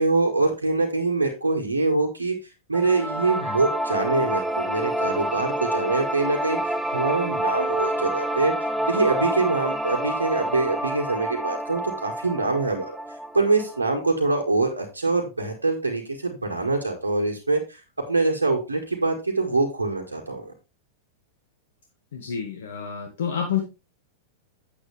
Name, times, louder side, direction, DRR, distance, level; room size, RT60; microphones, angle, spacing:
voice 1, 0.0-2.4 2.7-8.5 8.9-13.0 13.3-17.8 18.1-20.5, right 3 dB, 90° right, -1 dB, 1.9 m, -24 dB
sound 1, 2.7-13.8, right 1 dB, 5° right, 0.9 m, -28 dB
voice 2, 22.1-23.6, left 8 dB, 70° left, 3 dB, 1.6 m, -28 dB
9.3 x 8.0 x 3.4 m, 0.27 s
figure-of-eight pair, 95°, 0 cm